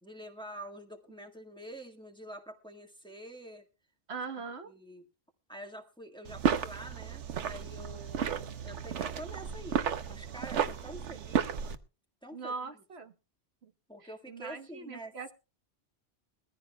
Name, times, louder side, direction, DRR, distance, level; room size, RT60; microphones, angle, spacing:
voice 1, 0.0-3.6 4.4-5.0 5.5-11.6 12.2-12.5 13.9-15.3, right 1 dB, 5° left, 3 dB, 1.5 m, -47 dB
voice 2, 4.1-4.7 12.3-13.1 13.6-13.7 14.0-15.3, right 4 dB, 65° right, 8 dB, 1.3 m, -41 dB
sound 1, 6.2-11.8, right 7 dB, 85° right, 1.2 m, -33 dB
21.5 x 14.5 x 2.2 m, 0.32 s
omnidirectional pair, 1.2 m